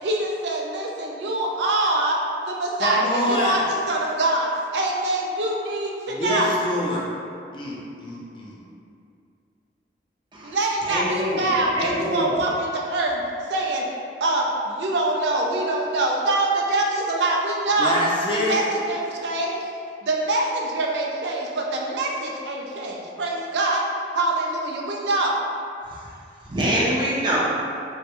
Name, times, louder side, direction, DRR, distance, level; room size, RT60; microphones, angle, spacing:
voice 1, 0.0-6.5 10.4-13.2 13.5-13.9 14.2-18.0 18.3-19.7 20.0-23.9 24.1-25.4, right 2 dB, 80° right, -1 dB, 0.4 m, -24 dB
voice 2, 2.8-3.5 6.1-7.0 7.5-8.6 17.8-18.6, equal, 30° left, -4 dB, 0.5 m, -25 dB
voice 3, 10.9-12.5 26.5-27.4, equal, 25° right, -6 dB, 0.5 m, -25 dB
3.0 x 2.2 x 2.9 m, 2.4 s
head